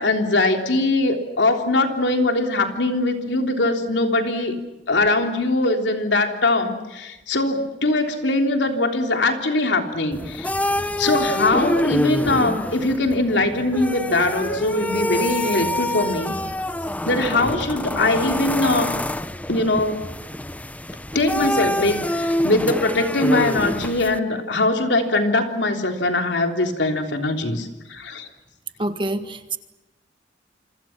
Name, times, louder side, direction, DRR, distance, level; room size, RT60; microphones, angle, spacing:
voice 1, 0.0-4.6 4.9-10.5 11.0-16.3 17.1-18.9 19.5-20.0 21.1-28.3, left 2 dB, 70° left, 4 dB, 3.5 m, -21 dB
sound 1, 10.1-24.2, left 1 dB, 10° left, 0.8 m, -26 dB
voice 2, 28.8-29.6, right 1 dB, 30° right, 9 dB, 1.7 m, -26 dB
28.5 x 26.0 x 6.0 m, 1.1 s
head